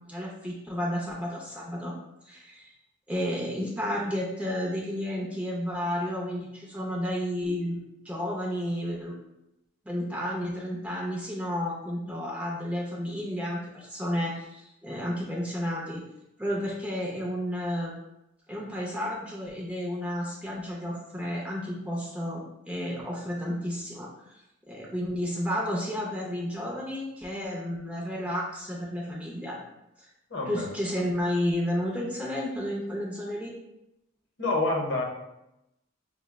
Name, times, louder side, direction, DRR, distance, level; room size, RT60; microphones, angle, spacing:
voice 1, 0.0-1.9 2.2-2.7 3.1-9.2 9.9-16.0 16.4-17.9 18.5-24.4 24.7-29.6 30.0-30.1 30.5-33.5, equal, 5° right, -4 dB, 0.4 m, -32 dB
voice 2, 30.3-30.7 34.4-35.0, left 2 dB, 55° left, -1 dB, 0.8 m, -27 dB
5.8 x 2.1 x 2.2 m, 0.88 s
head